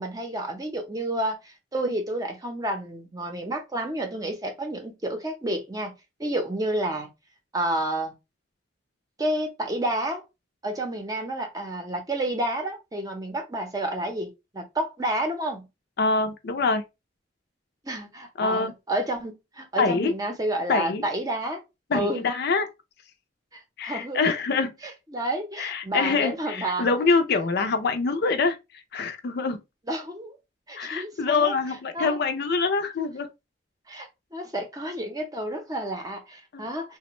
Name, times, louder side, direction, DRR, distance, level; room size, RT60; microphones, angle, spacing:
voice 1, 0.0-5.9 6.2-7.1 7.5-8.1 9.2-10.2 10.6-15.7 17.8-21.6 21.9-22.3 23.5-24.2 25.1-26.9 29.9-30.4 30.7-31.5 31.9-32.2 33.9-37.0, right 1 dB, 20° right, 0.7 m, -30 dB
voice 2, 16.0-16.8 18.4-18.7 19.8-20.1 20.7-21.0 21.9-22.7 23.8-24.8 25.6-29.6 30.8-33.3 36.5-36.7, left 4 dB, 55° left, 0.5 m, -25 dB
3.4 x 2.1 x 2.9 m
head